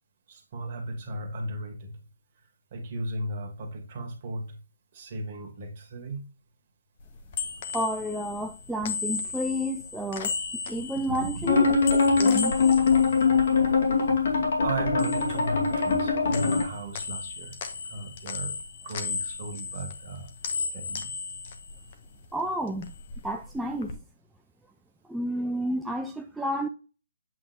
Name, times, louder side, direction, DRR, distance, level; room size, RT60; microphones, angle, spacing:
voice 1, 0.3-2.0 2.7-4.6 4.9-6.2 10.7-11.7 13.0-13.7 14.1-14.2 14.6-17.6 17.9-18.5 18.8-20.3 20.6-21.1, right 2 dB, 40° right, 2.0 m, -36 dB
sound 1, 7.0-14.3 14.6-16.0 16.3-22.3 22.6-23.9, left 5 dB, 40° left, 1.1 m, -36 dB
voice 2, 7.7-10.3 10.7-12.5 22.3-22.9 23.2-24.0 25.1-26.7, equal, 5° right, 0.3 m, -31 dB
sound 2, 11.5-16.6, left 4 dB, 65° left, 2.5 m, -22 dB
8.2 x 3.7 x 3.1 m
hypercardioid pair, 150°, 0 cm